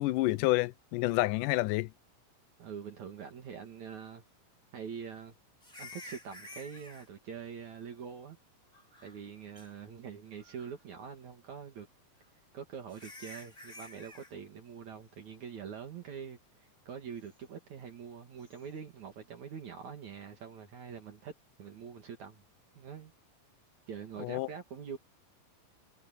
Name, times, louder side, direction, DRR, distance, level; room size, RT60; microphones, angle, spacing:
voice 1, 0.0-1.9 24.2-24.5, left 19 dB, 80° left, 2.0 m, -29 dB
voice 2, 2.6-4.2 4.7-5.3 5.8-8.4 9.0-11.9 12.5-21.3 21.6-22.4 22.7-23.1 23.9-25.0, right 7 dB, 60° right, 3.3 m, -44 dB
sound 1, 5.6-7.1 8.7-9.3 9.6-9.7 10.3-10.8 12.2-12.3 12.9-14.3 18.4-18.6, left 2 dB, 10° left, 6.4 m, -50 dB
omnidirectional pair, 3.9 m